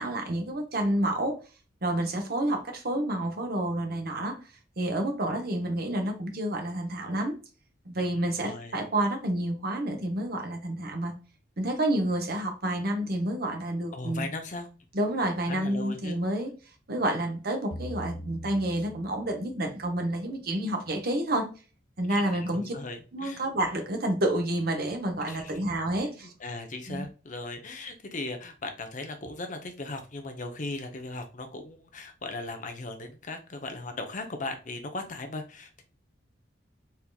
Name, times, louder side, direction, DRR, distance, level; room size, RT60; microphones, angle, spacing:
voice 1, 0.0-1.4 1.8-4.4 4.8-7.3 7.8-11.1 11.6-14.3 14.9-16.5 16.9-21.5 22.0-22.7 23.1-26.3 26.9-27.0, right 1 dB, 55° right, 1.0 m, -29 dB
voice 2, 8.4-8.8 13.9-14.7 15.5-16.2 22.1-23.4 25.3-25.6 26.0-35.8, left 2 dB, 40° left, 0.8 m, -38 dB
sound 1, 17.7-20.1, equal, 25° left, 0.4 m, -42 dB
4.3 x 3.7 x 2.3 m
head